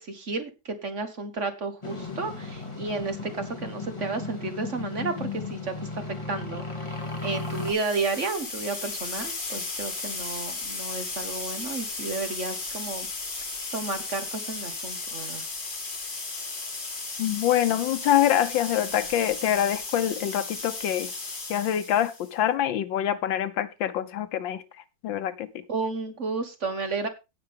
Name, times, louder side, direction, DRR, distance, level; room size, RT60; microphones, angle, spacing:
voice 1, 0.0-13.1 13.7-15.4 25.7-27.1, right 3 dB, 40° right, 1.5 m, -32 dB
sound 1, 1.8-7.7, left 3 dB, 15° left, 2.1 m, -35 dB
sound 2, 7.4-22.3, left 3 dB, 70° left, 3.6 m, -35 dB
voice 2, 17.2-21.1 21.5-24.6 25.0-25.5, left 11 dB, 85° left, 1.6 m, -25 dB
17.0 x 6.1 x 3.5 m
omnidirectional pair, 2.0 m